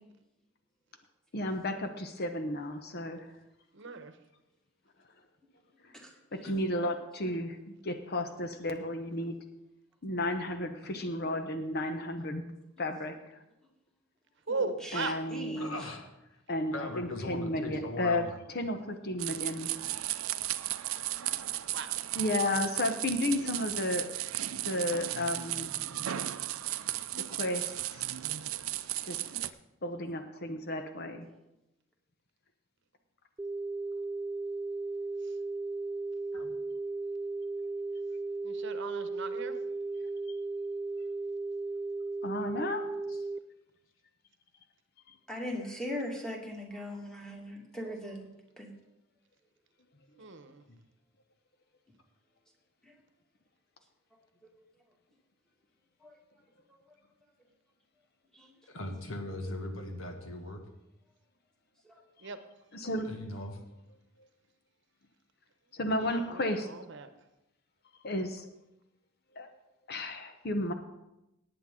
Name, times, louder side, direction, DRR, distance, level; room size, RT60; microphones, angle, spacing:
voice 1, 1.3-3.3 5.8-5.9 6.3-9.4 10.0-12.4 12.8-13.4 14.9-15.8 16.5-19.8 22.1-24.2 24.6-25.7 27.3-28.0 29.0-29.2 29.8-31.3 42.2-42.9 45.1-45.2 62.7-63.1 65.7-66.7 68.0-68.5 69.4-69.5 69.9-70.7, left 1 dB, 50° left, 7 dB, 0.9 m, -33 dB
voice 2, 3.7-4.1 14.5-15.2 21.7-22.0 38.4-39.6 50.2-50.6 62.2-62.4 65.9-67.1, right 4 dB, 60° right, 10 dB, 1.0 m, -37 dB
voice 3, 14.5-15.7 45.3-48.3 48.6-48.7 56.0-56.1 58.4-58.5 61.9-62.0, left 1 dB, 5° left, -1 dB, 2.2 m, -39 dB
voice 4, 15.6-16.1 16.7-18.3 36.3-36.5 43.1-43.2 50.1-50.2 50.7-50.8 58.7-60.6 63.0-63.6, left 2 dB, 75° left, 4 dB, 1.9 m, -39 dB
sound 1, 19.2-29.5, right 14 dB, 85° right, 0.5 m, -35 dB
sound 2, 33.4-43.4, right 3 dB, 15° right, 0.3 m, -36 dB
18.0 x 8.9 x 3.8 m, 0.91 s
head